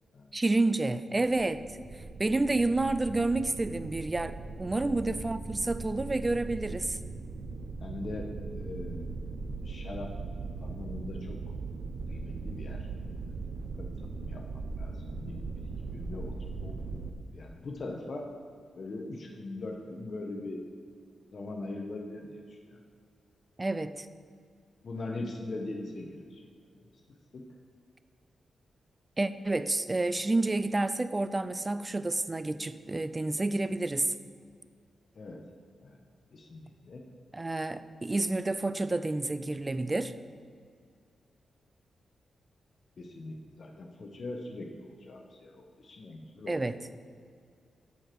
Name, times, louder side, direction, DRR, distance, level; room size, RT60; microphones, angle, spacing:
voice 1, 0.3-1.7 2.2-7.0 23.6-24.1 29.2-34.1 37.3-40.1 46.5-46.8, right 2 dB, 20° right, 13 dB, 0.4 m, -29 dB
sound 1, 1.2-17.1, right 3 dB, 75° right, 0.7 m, -39 dB
voice 2, 7.8-9.1 9.7-10.1 10.6-11.4 12.1-12.8 13.8-14.4 14.7-16.3 16.6-17.0 17.3-18.3 18.8-20.6 21.3-22.8 24.8-26.4 27.3-27.4 35.1-35.4 35.8-36.0 36.3-37.0 43.0-46.6, left 2 dB, 55° left, 2 dB, 1.0 m, -41 dB
13.5 x 5.0 x 4.5 m, 2.1 s
cardioid pair, 105°, 0 cm